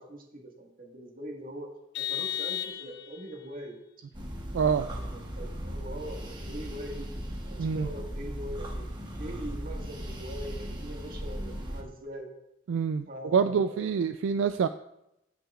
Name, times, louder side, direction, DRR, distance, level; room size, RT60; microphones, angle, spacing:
voice 1, 0.0-1.7 2.0-3.8 4.7-7.1 7.4-8.9 9.2-12.3 13.1-14.0, equal, 50° right, 0 dB, 1.7 m, -42 dB
Vehicle horn car horn honking, 1.9-3.3, left 11 dB, 65° left, 0.4 m, -34 dB
sound 1, 4.1-11.8, equal, 25° right, 1.1 m, -37 dB
voice 2, 4.5-4.9 7.6-7.9 12.7-14.7, right 6 dB, 80° right, 10 dB, 0.3 m, -26 dB
15.5 x 5.9 x 2.5 m, 0.84 s
head